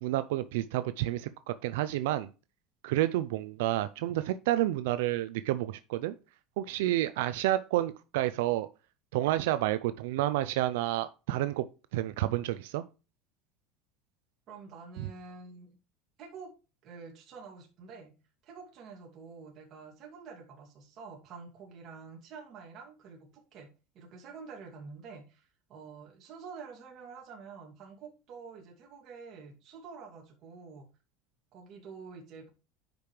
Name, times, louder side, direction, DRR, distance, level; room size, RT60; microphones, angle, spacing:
voice 1, 0.0-2.3 2.8-6.1 6.6-8.7 9.1-11.7 11.9-12.8 15.0-15.1, right 15 dB, 85° right, 13 dB, 0.5 m, -30 dB
voice 2, 14.5-15.8 16.2-16.5 16.8-18.1 18.4-23.7 23.9-30.9 31.5-32.5, right 5 dB, 45° right, 1 dB, 2.5 m, -48 dB
10.0 x 5.2 x 3.2 m, 0.31 s
supercardioid pair, 125°, 0 cm